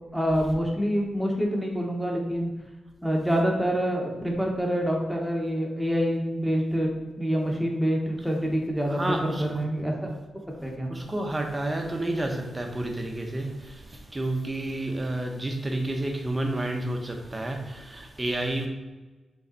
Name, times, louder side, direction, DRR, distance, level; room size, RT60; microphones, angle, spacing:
voice 1, 0.1-2.5 3.0-6.9 7.2-10.2 10.6-10.9, equal, 5° right, 0 dB, 1.6 m, -26 dB
voice 2, 8.9-9.4 10.9-18.7, right 1 dB, 20° right, 2 dB, 1.3 m, -30 dB
7.2 x 4.0 x 4.2 m, 1.2 s
cardioid pair, 95°, 0 cm